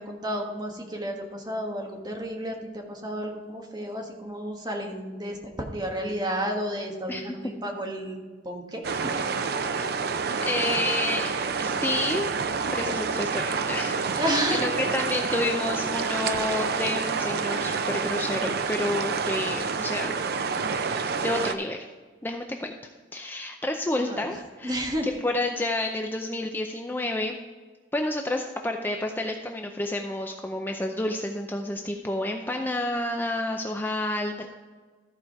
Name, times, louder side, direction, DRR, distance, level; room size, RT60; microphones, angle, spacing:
voice 1, 0.0-8.2 8.4-8.8 14.2-14.7 24.1-24.3 24.6-25.1, equal, 25° right, 1 dB, 1.4 m, -31 dB
sound 1, 8.8-21.5, right 5 dB, 60° right, 0.5 m, -28 dB
voice 2, 10.4-11.3 11.6-12.3 12.7-20.2 20.7-21.9 22.2-22.7 23.1-27.4 27.9-34.5, left 1 dB, 10° left, 3 dB, 0.5 m, -30 dB
14.0 x 4.9 x 4.7 m, 1.4 s
head